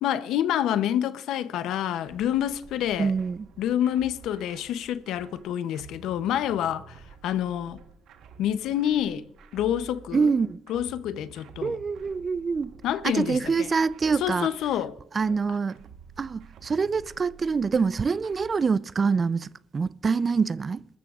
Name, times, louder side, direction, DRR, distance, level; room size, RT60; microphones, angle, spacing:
voice 1, 0.0-3.1 3.6-7.0 7.2-7.8 8.4-9.2 9.5-10.3 10.7-11.8 12.8-13.7 14.2-14.9, left 10 dB, 85° left, 0.6 m, -27 dB
sound 1, 2.1-18.7, right 6 dB, 80° right, 1.2 m, -51 dB
voice 2, 3.0-3.5 10.1-10.6 11.6-12.7 13.0-14.5 15.1-15.8 16.2-20.9, right 5 dB, 40° right, 0.4 m, -25 dB
22.0 x 13.5 x 2.4 m
cardioid pair, 90°, 0 cm